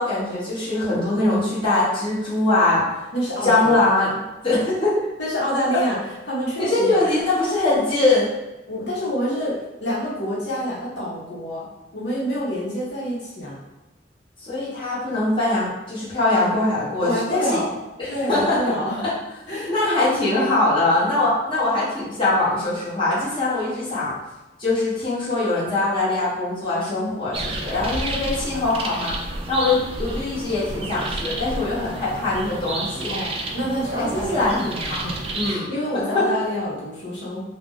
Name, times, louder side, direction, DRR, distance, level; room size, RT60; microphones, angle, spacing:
voice 1, 0.0-3.0 3.4-4.1 4.4-5.0 6.6-8.3 14.4-17.6 18.0-18.6 19.5-24.1 24.6-29.1 29.5-33.1 34.0-35.1 35.3-35.7 36.1-36.2, left 2 dB, 30° left, -9 dB, 1.0 m, -22 dB
voice 2, 3.1-3.8 5.2-6.0 6.3-7.1 8.7-11.7 11.9-13.6 17.0-17.7 18.1-19.0 19.5-19.7 33.1-35.1 35.4-37.4, equal, 75° left, -6 dB, 0.8 m, -27 dB
sound 1, 27.3-35.5, right 2 dB, 35° right, 0.3 m, -30 dB
2.5 x 2.0 x 3.6 m, 1.0 s
head